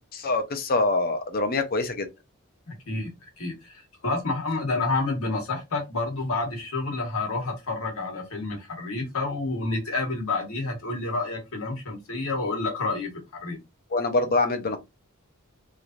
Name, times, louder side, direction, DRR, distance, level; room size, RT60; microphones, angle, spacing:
voice 1, 0.1-2.1 13.9-14.8, left 3 dB, 45° left, 0.6 m, -25 dB
voice 2, 2.7-3.1 3.4-13.1 13.4-13.6, left 3 dB, 75° left, 1.3 m, -29 dB
3.2 x 2.6 x 2.5 m
head